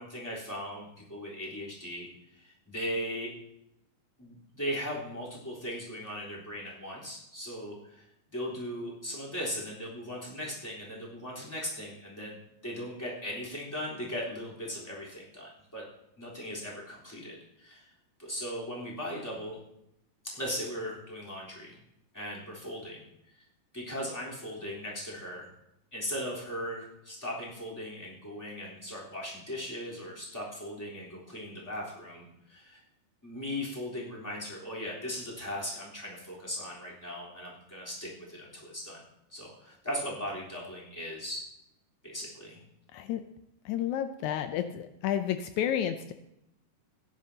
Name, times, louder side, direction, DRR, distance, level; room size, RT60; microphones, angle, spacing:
voice 1, 0.0-3.3 4.2-8.0 8.3-12.4 12.6-15.8 16.2-17.9 18.2-19.6 20.2-21.8 22.1-23.0 23.7-25.5 25.9-32.8 33.2-39.0 39.3-41.5 42.0-42.6, equal, 5° left, -6 dB, 3.3 m, -38 dB
voice 2, 43.7-46.1, left 10 dB, 90° left, 8 dB, 1.6 m, -31 dB
17.5 x 10.5 x 2.8 m, 0.82 s
omnidirectional pair, 4.1 m